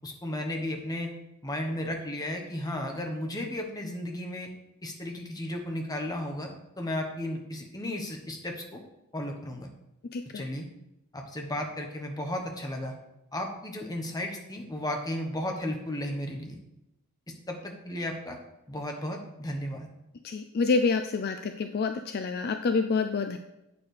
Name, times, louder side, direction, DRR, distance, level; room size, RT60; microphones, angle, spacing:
voice 1, 0.0-1.1 1.4-4.5 4.8-8.8 9.1-9.7 10.3-10.7 11.1-12.9 13.3-16.6 17.5-18.4 18.7-19.9, left 1 dB, 15° left, 2 dB, 1.0 m, -34 dB
voice 2, 10.1-10.4 20.2-23.4, left 4 dB, 45° left, 7 dB, 0.4 m, -27 dB
8.3 x 6.9 x 3.3 m, 0.91 s
head